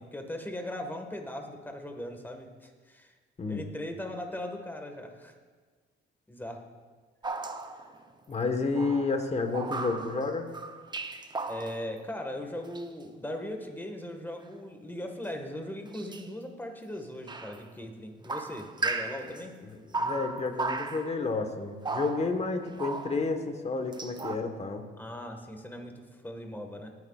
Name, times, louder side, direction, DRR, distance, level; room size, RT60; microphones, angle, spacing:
voice 1, 0.0-3.1 3.5-5.4 6.3-6.7 11.5-19.6 25.0-26.9, left 1 dB, 10° left, 4 dB, 1.6 m, -39 dB
sound 1, 7.2-8.0 8.8-12.0 12.7-12.8 15.9-16.3 17.3-17.6 18.2-19.4 19.9-21.2 21.8-23.4 23.9-24.4, right 3 dB, 20° right, 0.7 m, -35 dB
voice 2, 8.3-10.5 19.2-19.3 19.6-24.9, left 3 dB, 35° left, 6 dB, 1.3 m, -31 dB
19.5 x 9.4 x 2.4 m, 1.5 s
cardioid pair, 90°, 20 cm